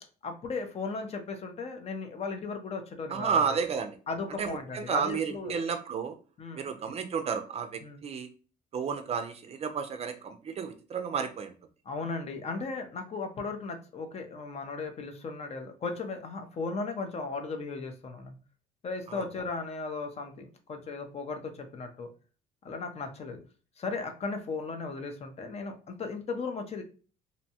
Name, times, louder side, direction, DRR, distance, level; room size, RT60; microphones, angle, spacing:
voice 1, 0.2-3.6 4.1-5.6 6.4-7.0 7.8-8.0 11.9-18.3 18.8-22.1 22.6-23.4 23.8-26.8, left 4 dB, 40° left, 5 dB, 0.5 m, -36 dB
voice 2, 3.1-3.9 4.4-6.1 6.5-8.3 8.7-11.5 19.1-19.2, right 6 dB, 40° right, 7 dB, 0.4 m, -32 dB
2.6 x 2.1 x 2.7 m, 0.37 s
cardioid pair, 110°, 17 cm